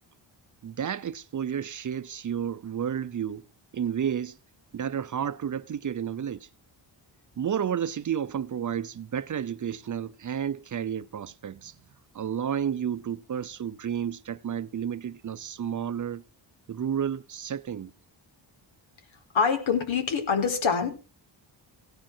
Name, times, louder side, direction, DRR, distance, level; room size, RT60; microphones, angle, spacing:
voice 1, 0.6-3.4 3.7-4.4 4.7-6.5 7.4-11.7 12.1-16.2 16.7-17.9, right 8 dB, 40° right, 0.7 m, -31 dB
voice 2, 19.3-20.9, left 6 dB, 90° left, 4.3 m, -25 dB
17.0 x 10.5 x 4.4 m
wide cardioid pair, 170°, 45 cm